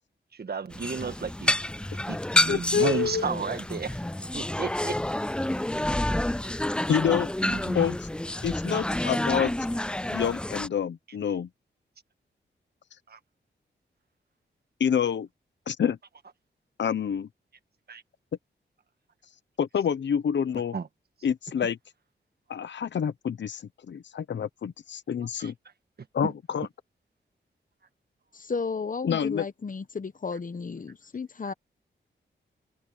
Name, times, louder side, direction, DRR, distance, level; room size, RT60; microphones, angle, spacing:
voice 1, 0.4-1.7 2.1-2.2 2.5-4.0 4.3-5.0 7.5-7.8 13.1-13.2 17.9-18.0 20.7-20.9 25.4-25.5 26.2-26.3 31.5-31.6, right 5 dB, 55° right, 1.6 m, -33 dB
sound 1, 0.7-10.7, left 1 dB, 5° left, 0.4 m, -29 dB
voice 2, 2.5-3.2 6.9-7.3 7.7-8.1 8.4-9.5 10.1-11.5 14.8-15.3 15.7-16.0 16.8-17.3 19.6-20.7 21.2-21.8 22.5-25.5 26.1-26.7 29.0-29.4, left 8 dB, 70° left, 1.0 m, -27 dB
voice 3, 28.3-31.5, left 5 dB, 45° left, 1.2 m, -33 dB
cardioid pair, 65°, 19 cm